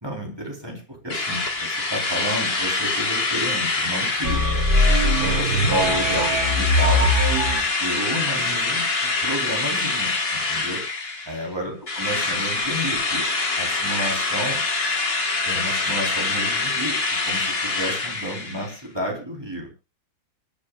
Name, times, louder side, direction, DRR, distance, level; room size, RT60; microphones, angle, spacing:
voice 1, 0.0-4.4 5.2-7.1 7.8-10.8 11.3-13.2 13.6-14.6 15.4-17.0 17.3-19.7, equal, 15° right, -1 dB, 3.8 m, -31 dB
Drill, 1.1-11.5 11.9-18.8, left 3 dB, 40° left, 1.9 m, -25 dB
sound 1, 4.2-7.6, left 1 dB, 70° right, 3.4 m, -21 dB
27.0 x 10.0 x 2.4 m, 0.30 s
omnidirectional pair, 1.7 m